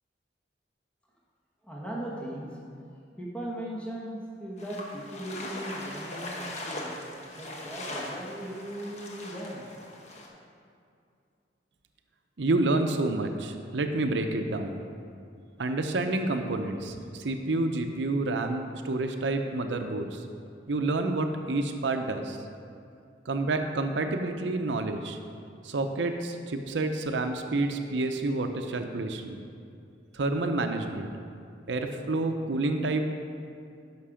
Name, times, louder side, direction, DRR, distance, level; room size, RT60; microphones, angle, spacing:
voice 1, 1.6-2.6 3.2-9.7, right 1 dB, 5° left, -5 dB, 1.2 m, -38 dB
sound 1, 4.6-10.3, left 1 dB, 40° left, 1.2 m, -40 dB
voice 2, 12.4-14.8 15.6-20.3 20.7-22.4 23.3-25.2 25.6-29.4 30.1-31.1 31.7-33.0, right 2 dB, 90° right, 5 dB, 0.6 m, -29 dB
11.0 x 6.0 x 5.0 m, 2.4 s
head